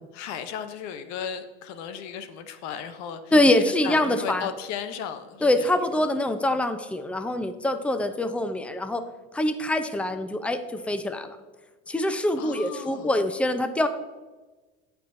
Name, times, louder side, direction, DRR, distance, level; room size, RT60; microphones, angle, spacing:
voice 1, 0.1-3.3 3.6-5.8 12.4-13.1, left 8 dB, 70° left, 10 dB, 0.9 m, -35 dB
voice 2, 3.3-4.5 5.4-9.0 9.3-11.4 11.9-13.9, left 1 dB, 5° left, 9 dB, 0.6 m, -24 dB
16.0 x 5.8 x 2.7 m, 1.3 s
supercardioid pair, 90°, 29 cm